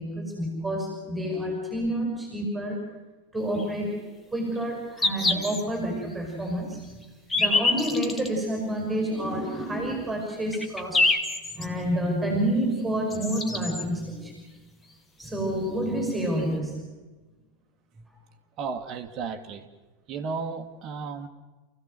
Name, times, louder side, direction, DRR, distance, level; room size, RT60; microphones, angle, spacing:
voice 1, 0.0-3.0 3.3-7.0 7.4-11.2 11.5-14.5 15.2-16.9, right 1 dB, 5° right, 1 dB, 5.9 m, -29 dB
sound 1, 3.5-3.7 4.6-4.7 5.0-5.6 6.1-6.2 7.0-8.3 9.1-9.2 9.9-10.0 10.3-11.7 12.8-12.9 13.1-13.8 15.3-15.4 15.6-15.7 16.4-16.5, left 2 dB, 15° left, 2.3 m, -26 dB
voice 2, 18.6-19.7 20.1-21.3, right 5 dB, 35° right, 5 dB, 2.0 m, -34 dB
29.0 x 16.0 x 7.9 m, 1.2 s
figure-of-eight pair, 90°, 0 cm